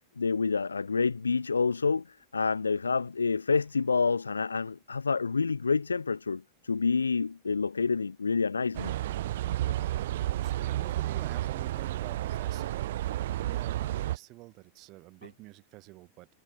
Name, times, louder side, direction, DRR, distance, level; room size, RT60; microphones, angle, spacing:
voice 1, 0.2-2.0 2.3-8.9, left 4 dB, 75° left, 0.9 m, -28 dB
sound 1, 8.7-14.2, right 14 dB, 55° right, 0.8 m, -31 dB
voice 2, 10.4-12.9 13.2-16.3, right 21 dB, 40° right, 7.9 m, -48 dB
figure-of-eight pair, 90°, 0 cm